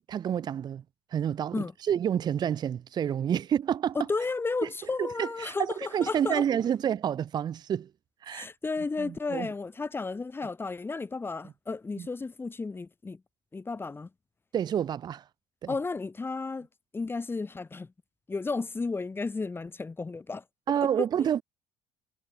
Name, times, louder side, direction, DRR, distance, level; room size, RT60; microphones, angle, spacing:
voice 1, 0.1-0.8 1.1-4.0 5.0-7.9 8.2-8.5 9.0-9.5 12.0-12.1 14.5-15.2 15.6-15.7 20.7-21.4, right 9 dB, 40° right, 0.6 m, -29 dB
voice 2, 4.0-6.4 8.3-13.2 13.5-14.1 15.7-16.7 16.9-17.9 18.3-20.4 21.0-21.1, left 3 dB, 20° left, 1.7 m, -33 dB
hypercardioid pair, 70°, 11 cm